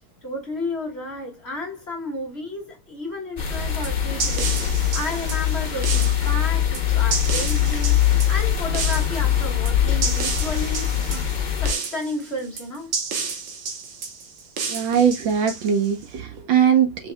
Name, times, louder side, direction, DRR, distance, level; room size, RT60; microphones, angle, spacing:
voice 1, 0.2-4.6 4.9-8.0 8.3-11.3 11.6-12.9, left 2 dB, 35° left, 1.5 m, -32 dB
sound 1, 3.4-11.7, left 10 dB, 75° left, 0.4 m, -22 dB
sound 2, 3.8-16.0, right 5 dB, 85° right, 2.0 m, -31 dB
voice 2, 14.7-17.1, right 8 dB, 70° right, 1.5 m, -20 dB
5.2 x 3.9 x 2.2 m
omnidirectional pair, 2.3 m